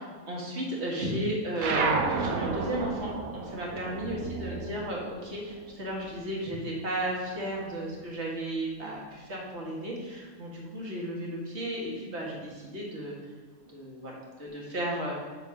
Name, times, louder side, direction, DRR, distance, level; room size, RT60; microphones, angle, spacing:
voice 1, 0.0-13.2 13.7-15.1, right 1 dB, 50° right, -3 dB, 2.0 m, -34 dB
sound 1, 1.6-6.4 6.7-8.2, right 4 dB, 80° right, 1.2 m, -32 dB
7.8 x 4.1 x 6.0 m, 1.5 s
omnidirectional pair, 1.5 m